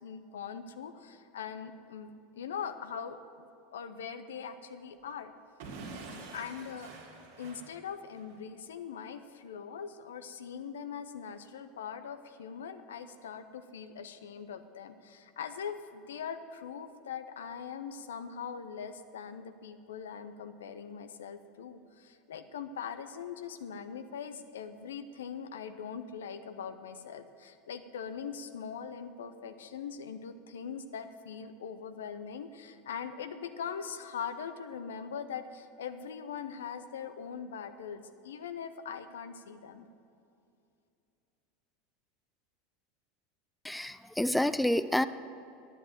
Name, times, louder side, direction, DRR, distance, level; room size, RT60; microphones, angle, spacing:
voice 1, 0.0-3.5 3.7-5.3 6.3-6.9 7.4-39.9, left 7 dB, 75° left, 10 dB, 0.6 m, -41 dB
Explosion / Shatter, 5.6-8.4, right 3 dB, 65° right, 2.1 m, -46 dB
voice 2, 43.6-45.1, left 1 dB, 5° left, 14 dB, 0.4 m, -28 dB
10.0 x 7.8 x 7.6 m, 2.6 s
hypercardioid pair, 80°, 0 cm